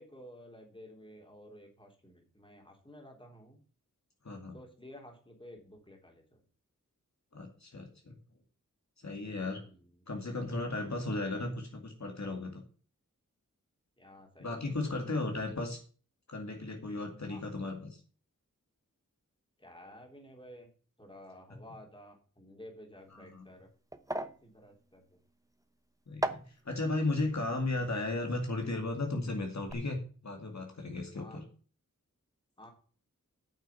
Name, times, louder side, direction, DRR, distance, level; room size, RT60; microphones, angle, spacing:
voice 1, 0.0-3.6 4.5-6.4 9.6-10.1 14.0-14.8 17.3-17.4 19.6-20.7 21.0-23.7 24.4-25.2 31.1-31.4 32.6-32.7, left 1 dB, 15° left, 2 dB, 3.4 m, -53 dB
voice 2, 4.2-4.6 7.3-8.2 9.0-9.6 10.1-12.6 14.4-15.8 16.3-18.0 23.1-23.5 26.1-30.0 30.2-31.4, left 2 dB, 55° left, 2 dB, 2.3 m, -35 dB
sound 1, 23.0-29.2 29.4-29.7, right 1 dB, 10° right, 0.9 m, -41 dB
8.9 x 6.5 x 7.0 m, 0.40 s
wide cardioid pair, 75°, 32 cm